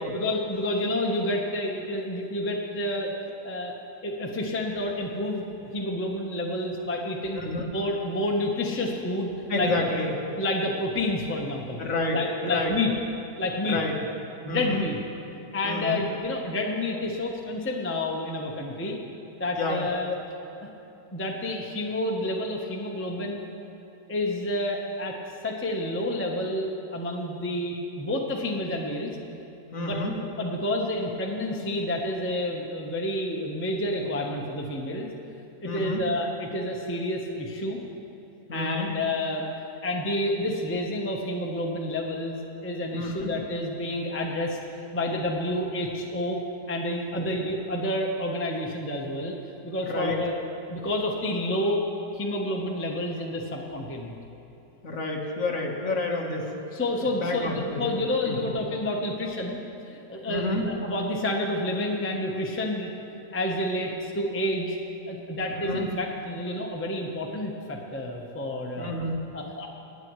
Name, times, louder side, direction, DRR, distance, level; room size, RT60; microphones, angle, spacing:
voice 1, 0.1-3.1 3.4-3.7 4.0-7.4 7.7-9.7 10.4-11.8 12.1-12.9 13.4-13.8 14.4-15.0 15.5-19.0 19.4-20.1 21.1-23.4 24.1-25.2 25.4-29.1 29.8-35.1 35.6-37.8 38.5-39.5 39.8-44.6 44.9-46.4 46.7-49.3 49.6-50.3 50.7-51.8 52.1-54.1 56.7-59.6 59.9-62.9 63.3-64.8 65.1-68.9 69.3-69.7, left 1 dB, 10° left, 0 dB, 0.7 m, -29 dB
voice 2, 7.3-7.7 9.5-10.1 11.8-12.7 13.7-14.0 14.5-14.8 15.6-16.0 18.9-19.0 19.6-19.8 29.7-30.2 35.6-36.0 38.5-38.9 42.9-43.3 47.1-47.2 49.9-50.2 54.8-56.5 57.2-58.5 60.3-60.7 65.6-65.9 68.8-69.2, left 2 dB, 50° left, 0 dB, 1.7 m, -29 dB
26.5 x 9.4 x 3.1 m, 3.0 s
omnidirectional pair, 1.9 m